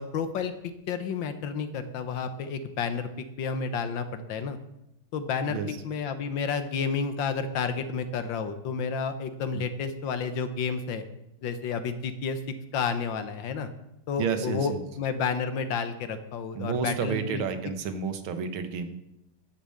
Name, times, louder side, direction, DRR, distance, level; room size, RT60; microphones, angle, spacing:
voice 1, 0.0-4.6 5.1-5.6 5.8-11.0 11.4-12.4 12.7-13.7 14.1-17.4, left 5 dB, 70° left, 9 dB, 1.6 m, -31 dB
voice 2, 14.2-14.8 16.5-18.9, right 6 dB, 80° right, 9 dB, 1.9 m, -30 dB
11.0 x 6.9 x 7.6 m, 0.88 s
omnidirectional pair, 2.3 m